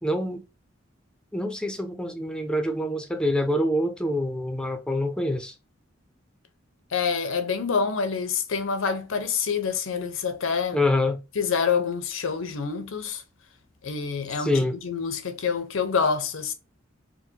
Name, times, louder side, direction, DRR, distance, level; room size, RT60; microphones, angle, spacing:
voice 1, 0.0-0.4 1.3-5.5 10.7-11.2 14.4-14.7, left 1 dB, 5° left, 0.5 m, -26 dB
voice 2, 6.9-10.8 11.4-13.2 13.8-16.5, left 6 dB, 80° left, 0.6 m, -27 dB
4.5 x 2.1 x 2.7 m
head